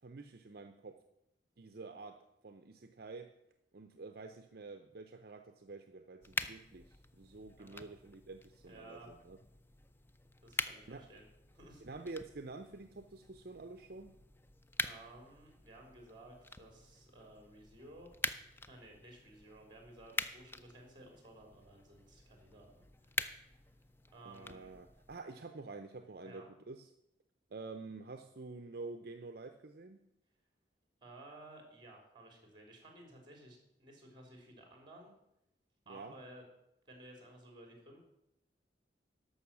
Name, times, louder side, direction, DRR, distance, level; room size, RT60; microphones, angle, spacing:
voice 1, 0.0-1.0 1.6-3.3 3.7-9.4 10.9-11.0 11.8-14.1 24.2-26.9 27.5-30.0 35.9-36.1, right 3 dB, 55° right, 8 dB, 0.6 m, -48 dB
sound 1, 6.2-25.2, left 2 dB, 10° left, 0.4 m, -45 dB
voice 2, 8.7-9.1 10.4-11.2 11.5-11.8 14.8-18.1 18.7-23.4 24.1-24.7 26.2-26.5 31.0-35.1 35.9-36.4 36.8-38.0, right 1 dB, 25° right, 2 dB, 3.1 m, -55 dB
13.0 x 5.5 x 7.2 m, 0.82 s
head